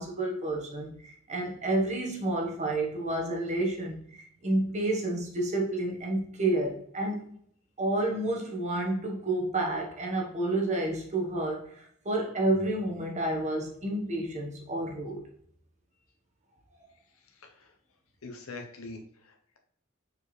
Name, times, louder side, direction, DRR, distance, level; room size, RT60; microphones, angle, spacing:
voice 1, 0.0-7.2 7.8-15.2, right 2 dB, 35° right, 0 dB, 1.3 m, -30 dB
voice 2, 18.2-19.6, left 3 dB, 90° left, 3 dB, 0.8 m, -44 dB
6.3 x 4.7 x 3.2 m, 0.65 s
head